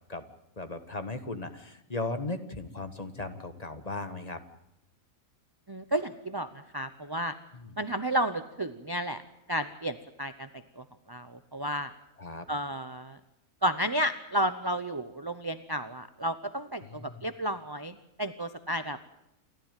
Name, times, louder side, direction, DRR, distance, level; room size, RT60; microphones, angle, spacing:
voice 1, 0.6-4.4 7.5-7.8 12.2-12.4 16.8-17.3, left 2 dB, 30° left, 9 dB, 1.5 m, -37 dB
voice 2, 5.7-7.3 7.8-9.2 9.5-10.5 10.8-11.9 12.5-13.2 13.6-19.0, right 1 dB, 20° right, 10 dB, 0.7 m, -32 dB
28.5 x 13.0 x 9.1 m, 0.83 s
omnidirectional pair, 1.5 m